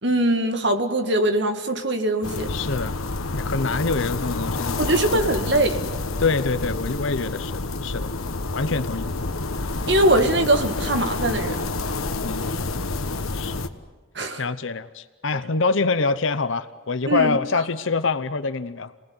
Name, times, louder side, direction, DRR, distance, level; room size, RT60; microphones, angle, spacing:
voice 1, 0.0-2.5 4.8-5.8 9.9-11.6 14.2-14.4 17.1-17.4, right 1 dB, 55° right, 6 dB, 2.1 m, -21 dB
sound 1, 2.2-13.7, left 3 dB, 90° left, 1.4 m, -28 dB
voice 2, 2.5-2.9 3.3-4.8 5.1-5.2 6.2-8.1 8.5-9.3 12.2-12.8 13.3-13.7 14.4-18.9, left 4 dB, 70° left, 12 dB, 0.9 m, -25 dB
27.5 x 19.0 x 9.7 m, 1.3 s
head